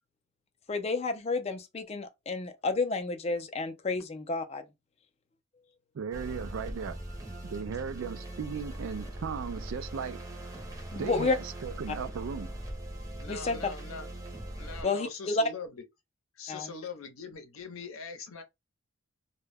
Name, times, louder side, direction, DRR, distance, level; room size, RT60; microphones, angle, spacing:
voice 1, 0.7-4.6 10.9-11.4 13.3-13.7 14.8-15.5 16.5-16.7, left 3 dB, 30° left, 0.4 m, -30 dB
voice 2, 5.9-7.0 7.4-10.2 10.9-12.5, right 6 dB, 65° right, 0.3 m, -36 dB
sound 1, 6.1-14.8, right 1 dB, 15° right, 0.7 m, -41 dB
voice 3, 13.2-14.1 14.5-15.8 16.4-18.4, left 4 dB, 80° left, 0.7 m, -42 dB
2.2 x 2.1 x 3.3 m
head